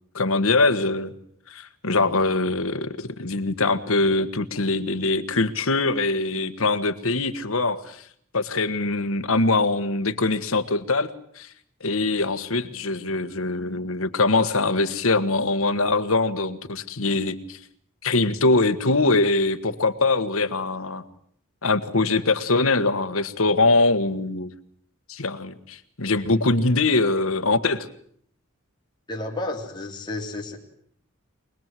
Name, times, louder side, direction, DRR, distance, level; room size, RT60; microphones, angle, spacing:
voice 1, 0.1-1.1 1.5-8.0 8.3-11.1 11.4-11.5 11.8-17.6 18.0-21.0 21.6-24.5 25.1-27.9, left 3 dB, 80° left, 10 dB, 1.5 m, -23 dB
voice 2, 29.1-30.6, left 2 dB, 20° left, 0 dB, 3.4 m, -31 dB
25.0 x 20.0 x 7.7 m, 0.64 s
head